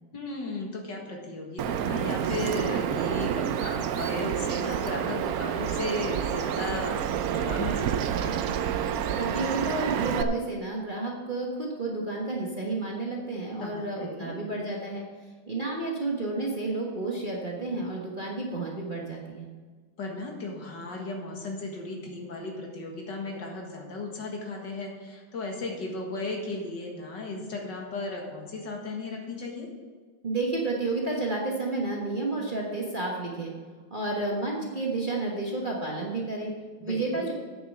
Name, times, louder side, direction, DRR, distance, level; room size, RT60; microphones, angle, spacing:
voice 1, 0.1-8.5 13.6-14.4 20.0-29.7 36.8-37.3, left 2 dB, 65° left, 0 dB, 2.3 m, -36 dB
Bird vocalization bird call bird song, 1.6-10.2, right 9 dB, 75° right, 0.8 m, -28 dB
voice 2, 9.1-15.0 15.5-19.5 30.2-33.5 33.9-36.5 36.8-37.3, right 2 dB, 30° right, -3 dB, 1.3 m, -31 dB
8.8 x 7.0 x 7.3 m, 1.5 s
omnidirectional pair, 2.1 m